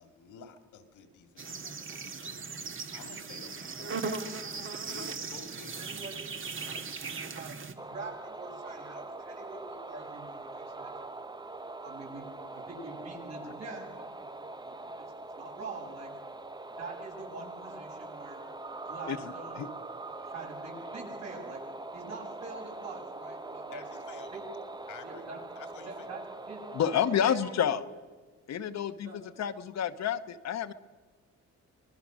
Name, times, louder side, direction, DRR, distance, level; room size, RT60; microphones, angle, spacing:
voice 1, 0.0-2.4 2.9-4.0 4.8-6.1 23.7-24.4 24.9-25.3 25.6-26.1, left 6 dB, 85° left, 7 dB, 2.3 m, -51 dB
sound 1, 1.4-7.7, right 4 dB, 40° right, 1.8 m, -38 dB
voice 2, 5.8-6.2 6.4-6.6 7.3-7.6 7.9-10.9 11.8-14.8 15.4-16.1 16.8-18.4 18.8-19.7 20.3-21.6 21.9-23.8 24.3-24.4 25.0-25.4 25.9-26.2 26.5-26.7 26.9-27.7 29.0-29.2, right 3 dB, 60° right, 0 dB, 7.4 m, -45 dB
sound 2, 7.8-27.3, right 2 dB, 15° right, 0.7 m, -43 dB
voice 3, 26.7-27.8 28.5-29.1 29.4-30.7, left 9 dB, 60° left, 10 dB, 1.0 m, -29 dB
25.5 x 20.0 x 6.3 m, 1.4 s
cardioid pair, 90°, 30 cm